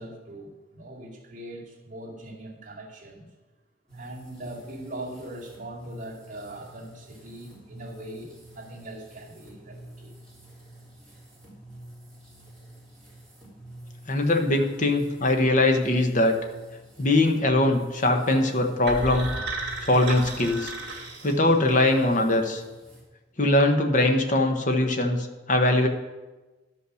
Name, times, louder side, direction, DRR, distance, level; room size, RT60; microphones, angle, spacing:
voice 1, 0.0-3.3 3.9-10.1 14.4-14.7, right 1 dB, 40° right, -3 dB, 2.4 m, -41 dB
sound 1, 3.9-23.0, right 1 dB, 5° left, 3.5 m, -48 dB
voice 2, 14.1-16.4 17.0-19.3 19.8-20.7 21.2-22.6 23.4-25.9, left 2 dB, 40° left, 4 dB, 1.1 m, -22 dB
sound 2, 18.9-21.9, right 3 dB, 60° right, 2.2 m, -34 dB
12.0 x 5.6 x 6.4 m, 1.2 s
head